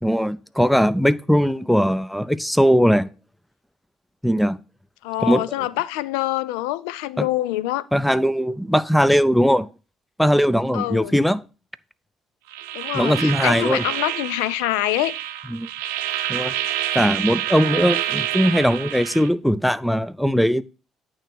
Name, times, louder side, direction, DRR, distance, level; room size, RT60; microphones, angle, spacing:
voice 1, 0.0-3.1 4.2-4.6 5.2-5.7 7.2-7.3 7.9-9.7 10.2-11.4 12.9-13.8 15.5-15.7 16.3-16.5 16.9-20.6, equal, ahead, 0.5 m, -19 dB
voice 2, 5.0-7.8 10.7-11.2 12.7-15.2, left 16 dB, 80° left, 0.4 m, -25 dB
sound 1, 12.5-19.3, right 12 dB, 80° right, 0.6 m, -28 dB
8.9 x 3.1 x 6.0 m
hypercardioid pair, 55°, 0 cm